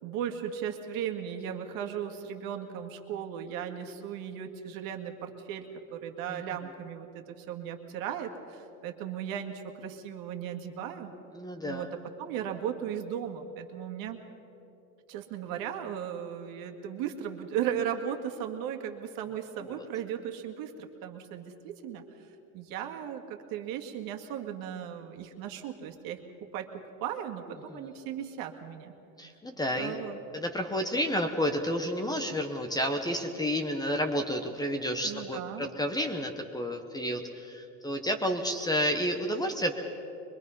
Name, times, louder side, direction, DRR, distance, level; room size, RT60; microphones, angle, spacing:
voice 1, 0.0-11.1 11.7-11.9 12.2-14.2 15.1-22.0 22.5-26.7 27.0-28.9 29.7-30.2 35.0-35.7, right 9 dB, 55° right, 4 dB, 2.0 m, -36 dB
voice 2, 11.3-11.9 19.6-19.9 27.7-27.9 29.2-30.0 30.3-39.7, equal, 10° left, 5 dB, 0.9 m, -31 dB
23.5 x 21.5 x 5.6 m, 2.9 s
cardioid pair, 150°, 41 cm